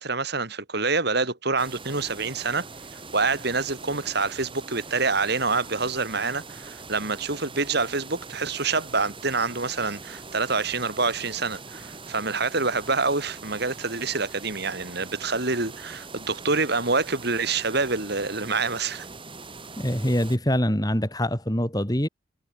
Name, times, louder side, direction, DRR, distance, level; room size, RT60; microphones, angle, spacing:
voice 1, 0.0-2.6 3.1-19.1, right 4 dB, 55° right, 4.0 m, -26 dB
sound 1, 1.6-20.4, right 4 dB, 25° right, 7.5 m, -42 dB
voice 2, 19.8-22.1, equal, 20° left, 6.1 m, -24 dB
head